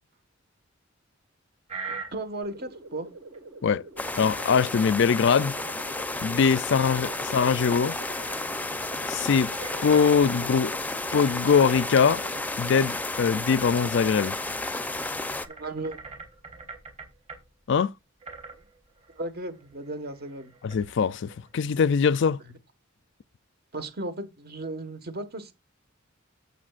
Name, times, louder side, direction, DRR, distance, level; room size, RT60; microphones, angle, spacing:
sound 1, 1.7-2.6 3.3-3.4 4.4-5.2 5.6-5.9 6.2-6.3 6.5-7.7 8.0-10.1 11.2-12.2 12.7-13.7 14.1-14.2 15.4-17.4 18.2-21.6, right 4 dB, 35° right, 3.4 m, -44 dB
voice 1, 2.1-3.1 15.5-16.0 19.2-20.5 23.7-25.5, right 2 dB, 50° right, 1.6 m, -35 dB
sound 2, 2.4-12.4, right 2 dB, 75° right, 7.3 m, -47 dB
sound 3, 4.0-15.5, left 2 dB, 10° left, 0.6 m, -32 dB
voice 2, 4.2-5.5 6.2-8.0 9.1-9.5 9.8-10.8 11.1-12.2 12.6-14.3 17.7-17.9 20.6-22.4, left 6 dB, 60° left, 0.4 m, -22 dB
16.0 x 6.8 x 2.5 m
head